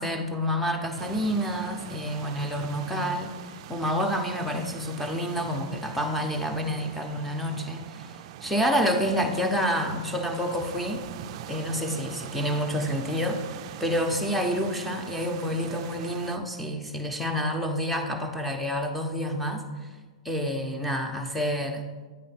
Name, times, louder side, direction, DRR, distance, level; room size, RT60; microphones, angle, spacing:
voice 1, 0.0-3.4 3.7-11.0 11.5-13.4 13.8-19.6 20.2-21.9, equal, ahead, 1 dB, 0.7 m, -28 dB
sound 1, 1.0-16.4, right 11 dB, 50° right, 0.3 m, -42 dB
8.6 x 3.1 x 5.7 m, 1.4 s
hypercardioid pair, 135°, 4 cm